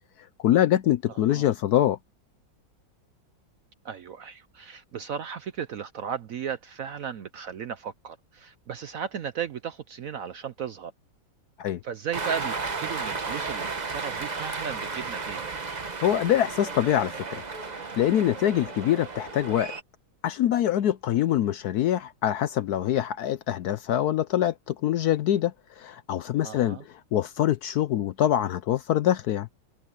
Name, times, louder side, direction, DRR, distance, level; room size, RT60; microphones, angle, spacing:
voice 1, 0.4-2.0 11.6-11.8 16.0-17.4 18.0-19.7 20.2-24.5 24.8-25.5 25.8-26.8 27.1-29.5, left 11 dB, 70° left, 1.0 m, -24 dB
voice 2, 1.1-1.5 3.8-10.9 11.8-15.6 26.4-26.8, right 8 dB, 65° right, 0.9 m, -35 dB
Cheering, 12.1-19.8, right 4 dB, 30° right, 1.0 m, -34 dB
omnidirectional pair, 2.1 m